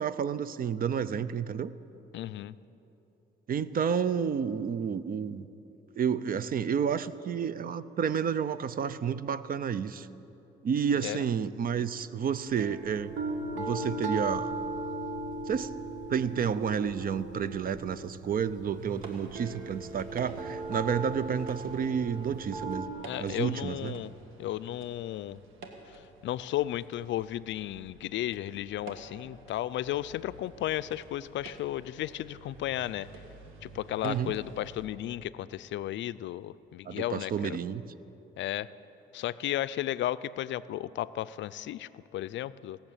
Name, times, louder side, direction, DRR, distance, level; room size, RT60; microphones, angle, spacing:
voice 1, 0.0-1.7 3.5-5.5 6.0-10.1 10.6-13.2 13.5-14.5 15.5-15.7 16.1-22.9 23.2-24.0 34.0-34.3 36.9-37.8, right 7 dB, 45° right, 16 dB, 0.5 m, -30 dB
voice 2, 2.1-2.6 11.0-11.2 23.1-24.1 24.4-25.4 25.9-33.1 33.6-37.6 38.4-38.7 39.1-42.8, left 13 dB, 70° left, 16 dB, 0.4 m, -34 dB
sound 1, 12.5-22.9, right 2 dB, 70° right, 1.6 m, -37 dB
sound 2, 18.8-34.9, right 3 dB, 85° right, 1.7 m, -49 dB
18.0 x 7.1 x 8.8 m, 3.0 s
cardioid pair, 90°, 20 cm